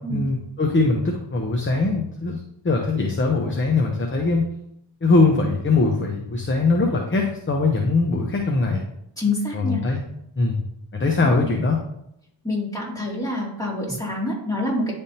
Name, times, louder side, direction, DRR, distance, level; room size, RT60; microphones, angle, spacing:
voice 1, 0.1-4.4 5.0-8.8 9.5-10.0 10.4-10.6 10.9-11.8, left 3 dB, 25° left, 1 dB, 0.8 m, -21 dB
voice 2, 9.2-9.8 11.2-11.4 12.4-14.9, left 2 dB, 10° left, -5 dB, 2.5 m, -26 dB
10.0 x 3.5 x 2.8 m, 0.76 s
cardioid pair, 75°, 46 cm